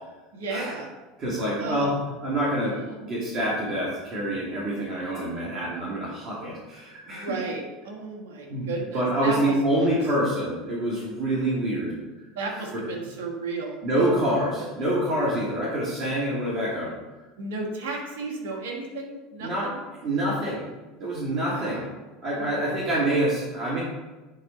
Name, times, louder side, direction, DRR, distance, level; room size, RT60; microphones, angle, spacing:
voice 1, 0.3-0.9 1.6-2.0 7.1-9.4 9.8-9.9 10.9-11.0 12.3-14.4 17.4-19.8 21.4-21.9 22.4-22.7, right 3 dB, 70° right, 0 dB, 1.6 m, -34 dB
voice 2, 1.2-2.8 3.0-7.3 8.5-11.9 12.7-12.8 13.8-16.9 19.4-19.7 20.0-20.6 21.0-21.8 22.2-23.8, right 1 dB, 45° right, -7 dB, 2.6 m, -26 dB
9.6 x 4.3 x 4.4 m, 1.2 s
hypercardioid pair, 75°, 0 cm